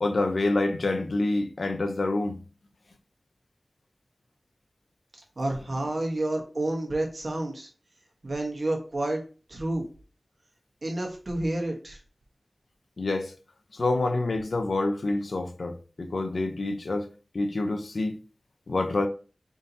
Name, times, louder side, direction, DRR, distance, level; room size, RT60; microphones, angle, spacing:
voice 1, 0.0-2.4 13.0-13.3 13.7-17.1 17.3-18.2 18.7-19.1, left 2 dB, 90° left, 0.5 m, -27 dB
voice 2, 5.4-7.7 8.2-9.2 9.5-9.9 10.8-12.0, right 1 dB, 60° right, 1.2 m, -29 dB
3.6 x 2.7 x 4.0 m
wide cardioid pair, 70°, 0 cm